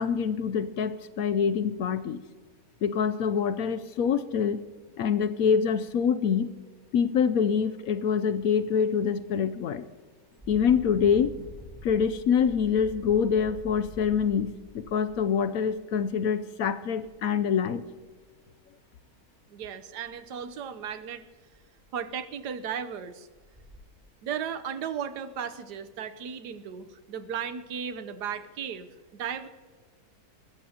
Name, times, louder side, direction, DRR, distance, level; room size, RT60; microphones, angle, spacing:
voice 1, 0.0-2.2 2.8-4.6 5.0-6.5 6.9-9.9 10.5-11.5 11.8-17.8, left 7 dB, 70° left, 13 dB, 0.9 m, -25 dB
Engine, 8.3-8.5 8.9-9.1 10.3-16.1 17.0-17.1 17.5-18.3 20.0-20.2 20.5-20.6 21.1-21.2 21.5-22.0 22.6-22.7 23.3-23.8, equal, 20° right, 3.2 m, -47 dB
voice 2, 19.5-21.3 21.9-23.3 24.2-29.5, right 7 dB, 80° right, 11 dB, 1.4 m, -35 dB
20.5 x 14.0 x 2.9 m, 1.5 s
omnidirectional pair, 1.8 m